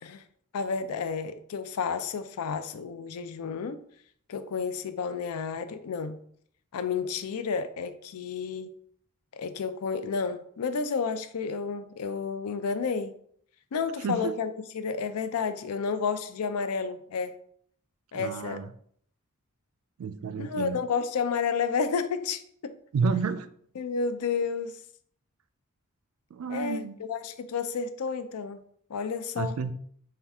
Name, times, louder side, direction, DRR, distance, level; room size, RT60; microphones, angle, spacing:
voice 1, 0.5-3.8 4.3-6.2 6.7-8.7 9.3-13.1 13.7-17.4 18.1-18.6 20.4-22.7 23.8-24.8 26.5-28.6 28.9-29.5, left 5 dB, 80° left, 11 dB, 0.4 m, -31 dB
voice 2, 14.0-14.3 18.1-18.7 20.0-20.8 22.9-23.5 26.3-27.0 29.4-29.7, right 5 dB, 65° right, 11 dB, 0.3 m, -30 dB
5.6 x 2.3 x 3.5 m, 0.64 s
head